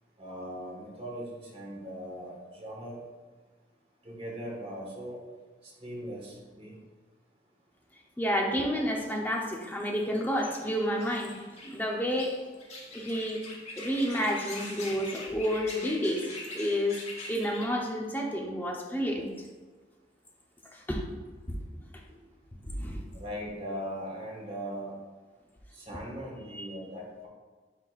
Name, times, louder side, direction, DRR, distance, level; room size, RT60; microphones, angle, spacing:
voice 1, 0.2-3.0 4.0-5.2 5.6-6.8 23.1-24.9 25.7-27.3, equal, 35° right, -3 dB, 1.5 m, -39 dB
voice 2, 8.2-11.4 11.6-12.3 12.9-13.4 13.8-16.3 16.5-17.0 17.3-19.3 20.7-21.0 22.7-23.0 26.5-26.7, equal, 10° left, 0 dB, 0.7 m, -30 dB
sound 1, 10.4-17.7, left 2 dB, 35° left, 1.2 m, -43 dB
9.4 x 4.1 x 2.4 m, 1.4 s
head